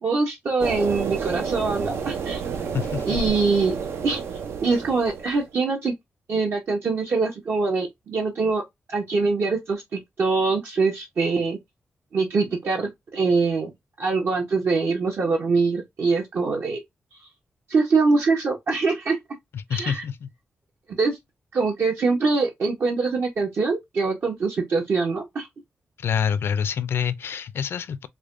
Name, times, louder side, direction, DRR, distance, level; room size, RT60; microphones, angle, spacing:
voice 1, 0.0-2.4 3.0-3.8 4.0-4.2 4.6-5.9 6.3-8.6 8.9-11.6 12.1-13.7 14.0-16.8 17.7-19.2 19.7-20.0 21.0-21.2 21.5-25.5, right 4 dB, 65° right, 0.8 m, -23 dB
sound 1, 0.6-5.5, right 6 dB, 90° right, 0.6 m, -30 dB
voice 2, 2.7-3.3 19.5-20.3 26.0-28.1, left 7 dB, 70° left, 0.4 m, -27 dB
4.8 x 2.2 x 2.5 m
wide cardioid pair, 110°, 4 cm